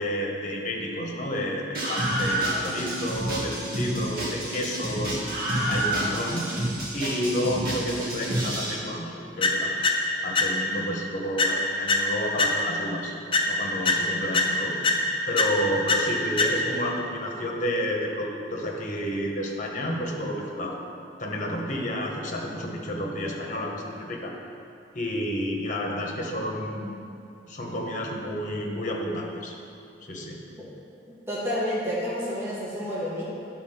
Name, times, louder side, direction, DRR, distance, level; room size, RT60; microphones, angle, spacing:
voice 1, 0.0-5.2 5.6-6.5 6.9-13.1 13.5-14.8 15.3-20.8 21.2-24.3 24.9-26.9 27.5-29.5 30.1-30.4, equal, 45° left, 0 dB, 1.2 m, -30 dB
Screaming, 1.7-8.7, right 1 dB, 55° right, 1.9 m, -29 dB
sound 1, 9.4-10.9 11.4-12.9 13.3-16.9, left 2 dB, 30° left, 0.7 m, -25 dB
voice 2, 31.3-33.2, equal, 15° right, -9 dB, 1.7 m, -29 dB
9.9 x 4.2 x 5.9 m, 2.7 s
head